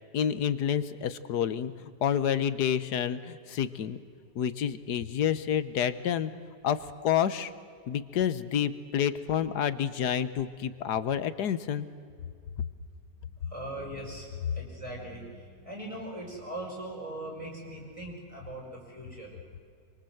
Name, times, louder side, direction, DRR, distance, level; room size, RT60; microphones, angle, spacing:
voice 1, 0.1-1.7 2.0-4.0 4.3-6.3 6.6-7.5 7.9-11.9, left 9 dB, 65° left, 13 dB, 1.5 m, -29 dB
voice 2, 13.4-19.3, right 1 dB, 15° right, -2 dB, 5.6 m, -40 dB
26.5 x 24.0 x 7.9 m, 2.3 s
omnidirectional pair, 1.9 m